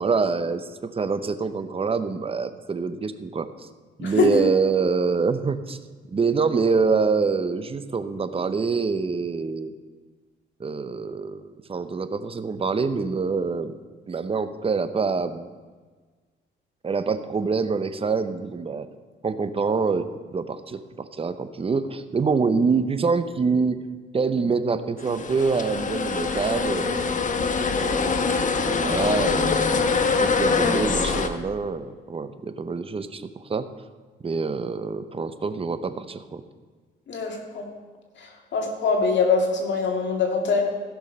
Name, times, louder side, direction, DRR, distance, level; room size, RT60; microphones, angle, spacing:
voice 1, 0.0-3.7 4.0-5.8 6.1-9.7 10.6-11.4 11.7-13.8 14.1-15.5 16.8-18.9 19.2-23.8 24.1-27.1 27.7-29.5 30.2-33.7 34.2-36.4, right 4 dB, 30° right, 11 dB, 0.8 m, -25 dB
voice 2, 4.0-4.4 37.1-37.7 38.2-40.6, left 4 dB, 65° left, 2 dB, 2.3 m, -23 dB
sound 1, 25.0-31.3, left 4 dB, 40° left, 1.0 m, -24 dB
15.5 x 6.4 x 5.4 m, 1.4 s
cardioid pair, 90°, 20 cm